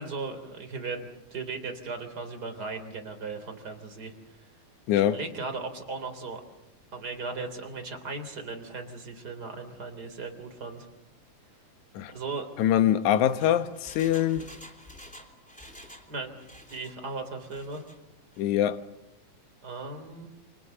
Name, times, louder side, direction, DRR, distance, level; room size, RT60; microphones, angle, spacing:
voice 1, 0.0-4.5 4.9-6.4 6.9-10.9 12.1-12.5 16.1-16.4 16.7-17.8 19.6-20.3, right 3 dB, 30° right, 3.9 m, -37 dB
voice 2, 4.9-5.2 12.0-12.1 12.6-14.4 18.4-18.8, left 11 dB, 75° left, 2.5 m, -23 dB
Engine, 13.3-16.1 16.4-17.0 17.4-18.0 18.3-18.4, left 1 dB, ahead, 2.8 m, -49 dB
29.5 x 25.0 x 6.8 m
omnidirectional pair, 3.5 m